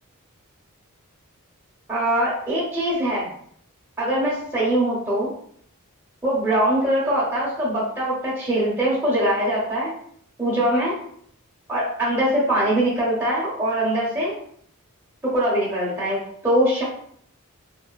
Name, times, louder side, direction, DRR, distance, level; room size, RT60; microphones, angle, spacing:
voice 1, 1.9-3.3 4.0-5.3 6.2-9.9 10.4-10.9 11.7-14.3 15.2-16.8, right 1 dB, 10° right, -8 dB, 0.6 m, -22 dB
2.3 x 2.3 x 2.2 m, 0.64 s
head